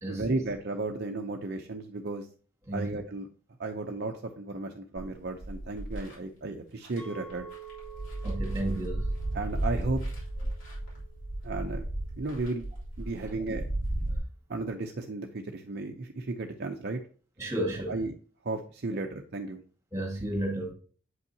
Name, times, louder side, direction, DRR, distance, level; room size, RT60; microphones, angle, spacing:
voice 1, 0.1-2.3 2.7-3.3 3.6-7.5 9.3-10.0 11.4-11.9 12.2-12.7 13.0-13.6 14.5-17.0 17.9-18.1 18.4-19.6, right 2 dB, 50° right, 0.6 m, -34 dB
voice 2, 2.7-3.0 8.2-9.1 13.2-13.3 17.4-18.0 18.9-19.0 19.9-20.7, right 1 dB, 15° right, 2.0 m, -33 dB
sound 1, 5.0-6.1 6.8-7.0 7.3-14.2, right 1 dB, 65° left, 3.3 m, -34 dB
Chink clink, 7.0-12.1, right 8 dB, 5° left, 1.9 m, -49 dB
7.8 x 5.5 x 2.7 m
head